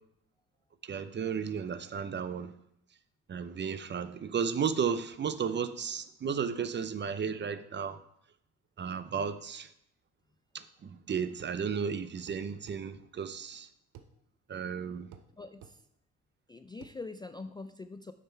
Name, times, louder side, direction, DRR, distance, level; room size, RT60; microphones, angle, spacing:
voice 1, 0.8-2.5 3.3-8.0 8.8-9.7 10.5-13.7 14.5-15.1, right 6 dB, 35° right, 0.6 m, -34 dB
sound 1, 11.4-11.6 12.3-12.8 14.0-14.1 15.1-15.3 15.6-15.8 16.8-17.0, right 9 dB, 80° right, 0.8 m, -51 dB
voice 2, 15.3-15.8 16.5-18.1, left 3 dB, 15° left, 0.3 m, -44 dB
6.7 x 6.5 x 4.4 m
cardioid pair, 90°, 30 cm